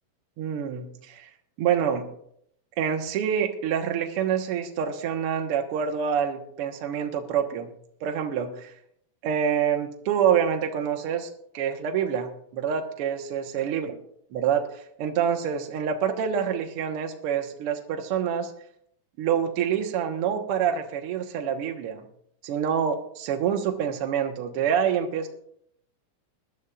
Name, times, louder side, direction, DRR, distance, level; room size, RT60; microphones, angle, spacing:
voice 1, 0.4-1.3 1.6-2.0 2.8-7.7 8.0-8.7 9.2-11.3 11.5-13.9 14.3-18.5 19.2-22.1 22.4-25.3, right 8 dB, 65° right, 4 dB, 1.5 m, -26 dB
21.0 x 11.5 x 2.4 m, 0.69 s
omnidirectional pair, 4.0 m